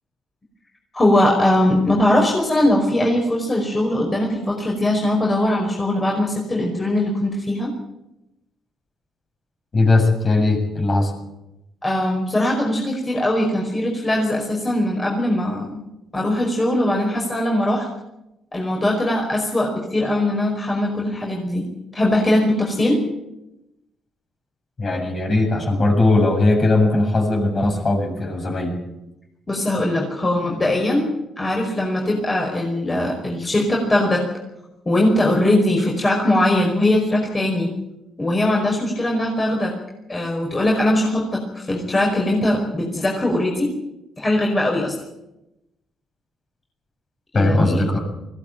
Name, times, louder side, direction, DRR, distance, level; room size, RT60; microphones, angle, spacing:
voice 1, 0.9-7.7 11.8-15.8 16.1-17.9 18.5-21.7 21.9-23.0 29.5-31.1 31.4-34.2 34.9-37.7 38.2-39.7 40.1-43.7 44.2-44.9 47.3-47.8, left 1 dB, 25° left, -1 dB, 5.3 m, -20 dB
voice 2, 9.7-11.1 24.8-28.8 47.3-48.0, left 2 dB, 40° left, 3 dB, 7.5 m, -19 dB
20.5 x 16.5 x 9.0 m, 0.92 s
cardioid pair, 90°, 0 cm